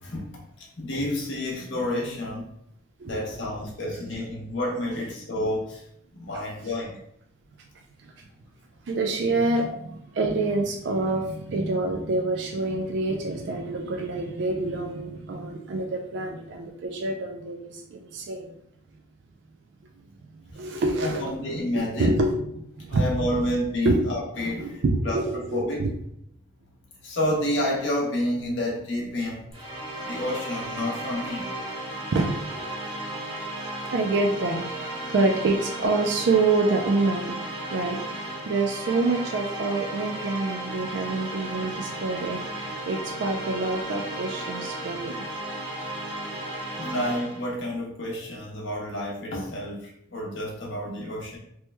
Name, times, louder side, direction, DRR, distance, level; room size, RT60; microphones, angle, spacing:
voice 1, 0.8-2.5 3.0-5.8 6.1-7.0 21.0-22.1 22.9-25.3 25.5-25.8 27.0-29.5 30.0-31.5 46.8-51.4, left 1 dB, 65° left, -2 dB, 0.7 m, -29 dB
voice 2, 3.0-3.5 8.0-8.1 8.9-9.7 10.2-18.5 20.2-23.2 23.8-24.1 24.6-25.9 32.1-32.7 33.9-37.3 37.7-45.1 46.3-46.4, right 3 dB, 55° right, 2 dB, 0.3 m, -27 dB
sound 1, 29.5-47.5, right 1 dB, 25° right, 0.7 m, -34 dB
3.0 x 2.2 x 3.2 m, 0.73 s
head